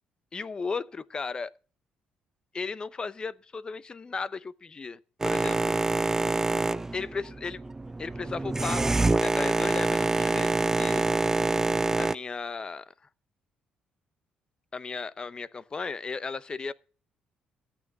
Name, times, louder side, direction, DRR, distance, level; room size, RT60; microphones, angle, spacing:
voice 1, 0.3-1.5 2.5-5.8 6.9-7.6 8.0-10.5 10.8-11.1 12.0-12.8 14.7-16.7, left 4 dB, 30° left, 0.8 m, -35 dB
Boat Water vehicle, 5.2-12.2, right 2 dB, 15° right, 0.5 m, -26 dB
13.5 x 9.0 x 5.3 m
cardioid pair, 100°, 3 cm